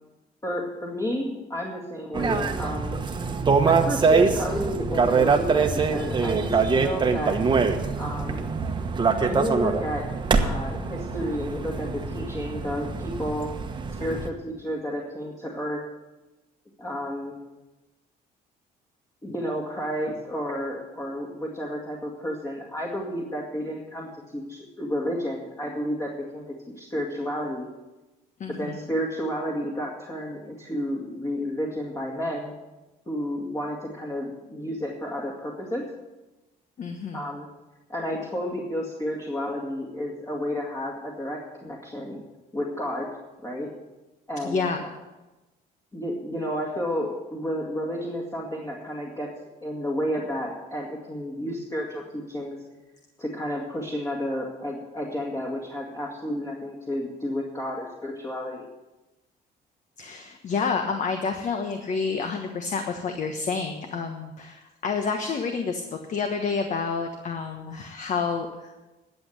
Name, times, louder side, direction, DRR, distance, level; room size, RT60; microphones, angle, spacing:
voice 1, 0.4-3.0 3.6-7.4 8.0-8.5 9.1-10.1 10.4-13.5 14.0-15.8 16.8-17.4 19.2-26.4 26.8-27.7 28.5-32.5 33.1-35.9 37.1-37.5 37.9-42.2 42.5-43.1 43.4-43.7 44.3-44.9 45.9-49.3 49.6-52.6 53.2-58.7, equal, 20° left, -2 dB, 2.2 m, -31 dB
sound 1, 2.1-14.3, right 5 dB, 25° right, 1.2 m, -24 dB
voice 2, 28.4-28.8 36.8-37.3 44.4-44.8 60.0-68.7, left 5 dB, 45° left, 5 dB, 1.3 m, -29 dB
11.5 x 7.7 x 8.0 m, 1.1 s
cardioid pair, 110°, 17 cm